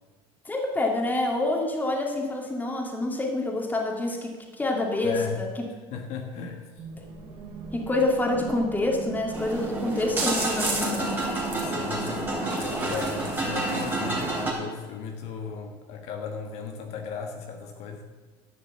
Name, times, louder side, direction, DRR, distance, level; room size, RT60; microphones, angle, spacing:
voice 1, 0.4-5.6 7.7-11.3, left 2 dB, 15° left, 1 dB, 2.4 m, -27 dB
voice 2, 5.0-5.4 5.9-6.7 11.5-18.0, left 6 dB, 60° left, 4 dB, 1.4 m, -36 dB
sound 1, 6.8-14.6, right 4 dB, 50° right, 2.5 m, -40 dB
sound 2, 9.3-14.5, right 2 dB, 15° right, 3.5 m, -29 dB
11.0 x 6.6 x 7.4 m, 1.4 s
supercardioid pair, 110°, 12 cm